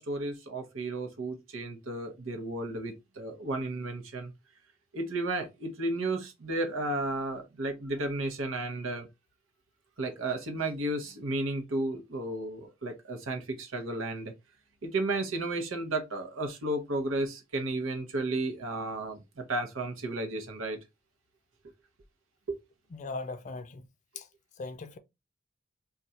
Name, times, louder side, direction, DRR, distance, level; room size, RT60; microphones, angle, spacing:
voice 1, 0.0-4.3 4.9-9.1 10.0-14.3 14.8-20.8 22.5-22.6, right 2 dB, 90° right, 0.8 m, -33 dB
voice 2, 22.9-23.8 24.2-24.3 24.6-25.0, left 3 dB, 40° left, 0.4 m, -39 dB
2.4 x 2.3 x 4.0 m
head